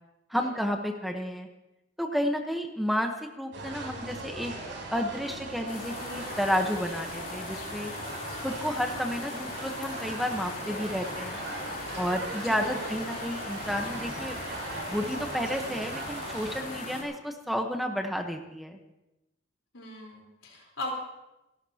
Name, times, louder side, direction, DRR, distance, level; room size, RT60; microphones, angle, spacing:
voice 1, 0.3-1.5 2.0-4.5 4.9-7.9 8.4-11.4 12.0-14.4 14.9-18.8, equal, ahead, 3 dB, 1.0 m, -31 dB
sound 1, 3.5-16.6, right 2 dB, 75° right, 5.7 m, -40 dB
sound 2, 5.7-17.0, left 2 dB, 45° left, 3.5 m, -39 dB
voice 2, 12.3-12.9 19.7-20.9, left 1 dB, 85° left, -1 dB, 4.0 m, -39 dB
28.0 x 12.0 x 2.9 m, 0.95 s
head